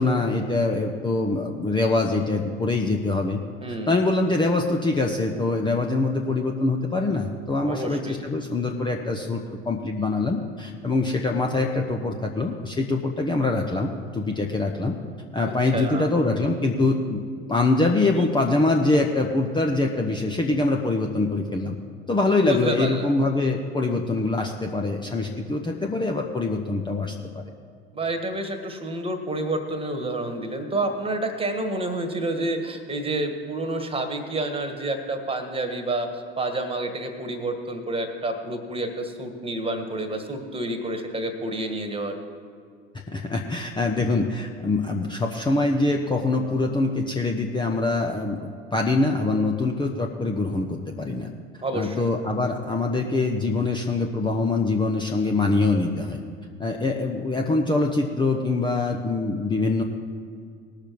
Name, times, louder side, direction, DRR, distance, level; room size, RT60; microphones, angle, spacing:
voice 1, 0.0-3.4 3.7-15.0 15.3-17.2 17.5-21.8 22.1-27.4 42.9-51.3 51.7-56.2 56.6-59.8, left 2 dB, 15° left, 2 dB, 0.8 m, -24 dB
voice 2, 3.6-4.0 7.6-8.2 15.4-16.1 22.4-23.1 27.9-42.2 51.6-52.0, right 2 dB, 15° right, 7 dB, 1.6 m, -29 dB
18.5 x 6.8 x 4.7 m, 2.2 s
hypercardioid pair, 75°, 31 cm